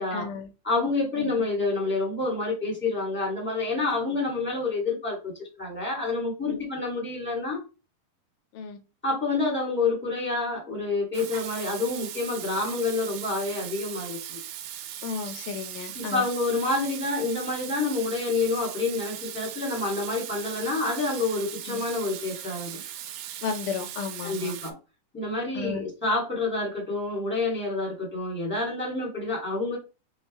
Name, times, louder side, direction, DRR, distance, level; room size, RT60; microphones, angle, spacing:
voice 1, 0.1-0.5 1.2-1.4 6.5-6.6 8.5-8.8 15.0-16.3 21.7-21.8 23.4-24.5 25.6-25.8, left 6 dB, 80° left, 2.2 m, -33 dB
voice 2, 0.6-7.6 9.0-14.4 15.9-22.8 24.2-24.8 25.1-29.8, left 3 dB, 5° left, 1.1 m, -28 dB
Water tap faucet / Sink (filling or washing), 11.1-24.7, right 11 dB, 85° right, 2.2 m, -39 dB
6.2 x 2.3 x 3.1 m
omnidirectional pair, 3.8 m